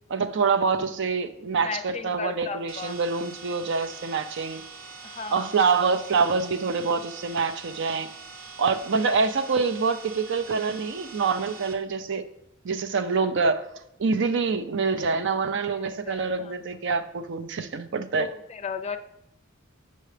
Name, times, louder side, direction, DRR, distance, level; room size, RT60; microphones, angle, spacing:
voice 1, 0.1-4.6 5.3-8.1 8.6-12.3 12.6-13.6 14.0-18.3, right 4 dB, 60° right, 10 dB, 0.5 m, -26 dB
voice 2, 1.6-3.0 5.0-5.5 15.6-16.5 18.2-19.0, left 5 dB, 30° left, 9 dB, 0.5 m, -35 dB
sound 1, 2.7-11.7, right 4 dB, 45° right, 0.9 m, -44 dB
7.8 x 6.5 x 3.3 m, 0.84 s
head